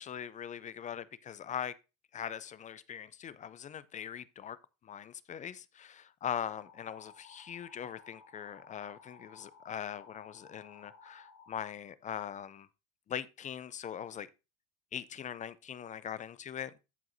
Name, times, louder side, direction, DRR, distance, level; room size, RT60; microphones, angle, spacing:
voice 1, 0.0-1.7 2.1-4.6 4.8-12.7 13.1-14.3 14.9-16.7, left 9 dB, 20° left, 0.3 m, -41 dB
sound 1, 6.5-11.5, left 4 dB, 80° left, 5.0 m, -57 dB
14.0 x 4.7 x 2.6 m
hypercardioid pair, 85°, 40 cm